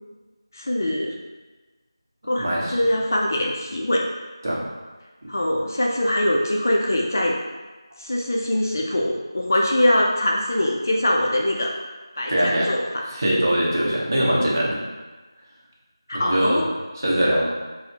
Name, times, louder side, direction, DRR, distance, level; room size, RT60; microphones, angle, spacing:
voice 1, 0.5-1.1 2.3-2.5 2.7-4.0 5.3-7.4 8.0-11.7 12.2-12.8 14.4-14.5 16.1-16.7, left 1 dB, 40° left, -1 dB, 0.4 m, -22 dB
voice 2, 2.4-2.8 4.4-4.6 5.2-5.3 12.3-12.7 13.1-14.8 16.1-16.6 17.0-17.4, right 1 dB, 40° right, -5 dB, 0.8 m, -22 dB
4.1 x 2.0 x 2.7 m, 1.3 s
figure-of-eight pair, 170°, 3 cm